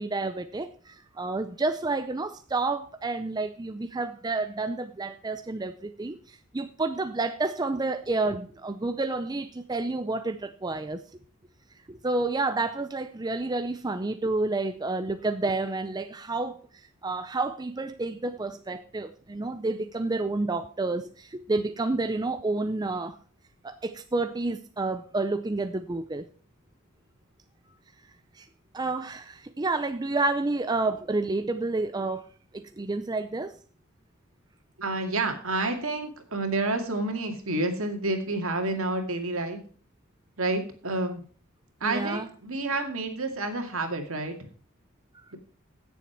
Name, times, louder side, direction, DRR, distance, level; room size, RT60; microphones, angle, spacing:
voice 1, 0.0-11.0 11.9-23.2 23.6-26.2 28.3-28.5 28.7-32.3 32.5-33.5 41.8-42.3, right 3 dB, 20° right, 9 dB, 0.5 m, -30 dB
voice 2, 34.8-39.6 40.4-41.2 41.8-44.5, right 2 dB, 65° right, 5 dB, 2.2 m, -29 dB
16.5 x 7.1 x 4.5 m, 0.43 s
head